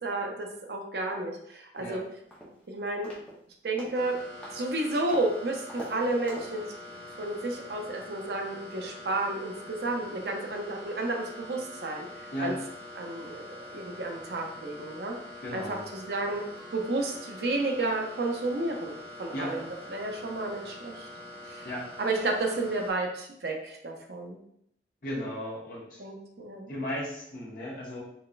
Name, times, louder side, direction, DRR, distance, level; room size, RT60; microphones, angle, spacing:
voice 1, 0.0-2.0 2.7-3.1 3.6-4.2 4.5-6.6 7.2-12.1 12.4-12.5 13.0-13.4 13.7-15.1 15.5-16.4 16.7-21.1 21.4-21.7 22.0-24.4 26.0-26.7, right 2 dB, 65° right, 2 dB, 0.6 m, -31 dB
sound 1, 1.8-1.9 2.3-2.6 3.0-3.4 3.8-4.0 4.4-4.7 5.1-5.3 5.7-5.9 6.3-6.6, equal, 10° left, 0.7 m, -43 dB
sound 2, 3.9-22.9, left 1 dB, 75° left, 1.4 m, -45 dB
voice 2, 15.4-15.8 19.3-19.6 21.6-21.9 25.0-26.0 26.7-28.0, equal, 50° left, -5 dB, 1.2 m, -35 dB
4.0 x 3.2 x 2.4 m, 0.72 s
head